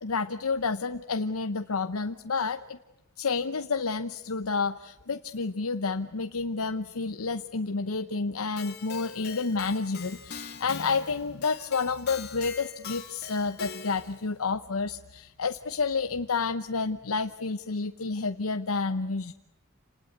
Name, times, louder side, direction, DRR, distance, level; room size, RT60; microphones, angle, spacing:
voice 1, 0.0-2.8 3.2-19.3, left 4 dB, 85° left, 8 dB, 0.9 m, -30 dB
Keyboard (musical), 8.6-14.2, left 6 dB, 50° left, 2.7 m, -42 dB
28.5 x 19.5 x 8.1 m, 0.94 s
head